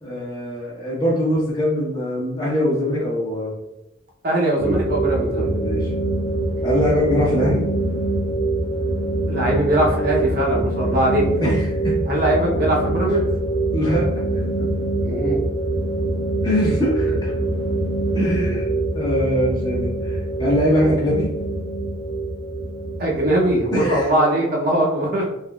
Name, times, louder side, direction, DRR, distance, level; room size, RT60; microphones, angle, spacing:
voice 1, 0.0-3.5 5.3-5.9 6.6-7.6 11.4-11.9 13.1-13.2 13.7-14.1 16.4-17.3 18.1-18.7 18.9-21.3 23.7-24.1, equal, 20° left, -6 dB, 1.0 m, -22 dB
voice 2, 4.2-5.4 9.3-11.3 12.1-13.2 15.0-15.4 18.2-18.5 23.0-25.3, right 1 dB, 45° right, -3 dB, 0.7 m, -21 dB
sound 1, 4.6-24.1, right 2 dB, 85° left, 1.1 m, -24 dB
3.5 x 2.8 x 2.3 m, 0.93 s
head